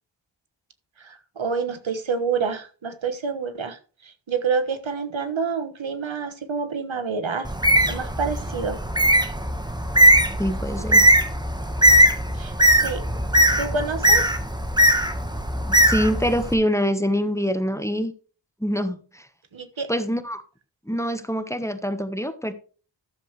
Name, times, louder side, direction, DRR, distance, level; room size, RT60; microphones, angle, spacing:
voice 1, 1.0-7.5 7.9-8.8 12.3-13.0 13.6-14.2 19.5-19.9, right 5 dB, 85° right, 1.3 m, -28 dB
Bird, 7.4-16.5, equal, 10° right, 1.5 m, -19 dB
voice 2, 10.4-11.0 15.7-18.1 18.6-19.3 19.9-20.4 20.9-22.5, equal, 5° left, 1.2 m, -25 dB
12.5 x 7.2 x 3.3 m
wide cardioid pair, 45°, 45 cm